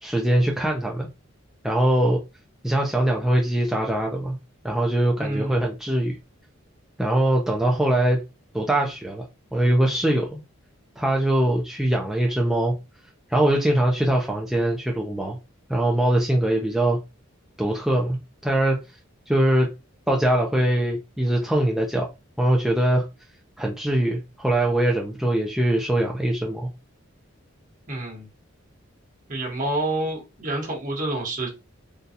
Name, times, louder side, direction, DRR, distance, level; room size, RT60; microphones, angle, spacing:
voice 1, 0.0-1.1 1.6-2.2 2.6-4.4 4.6-6.2 7.0-8.2 8.5-9.2 9.5-10.4 11.0-12.7 13.3-15.4 15.7-17.0 17.6-18.2 18.4-18.8 19.3-19.7 20.1-22.1 22.4-23.0 23.6-26.7, right 1 dB, ahead, 0.4 m, -22 dB
voice 2, 5.2-5.6 27.9-28.3 29.3-31.5, right 2 dB, 40° right, 1.2 m, -28 dB
3.8 x 2.3 x 2.7 m
head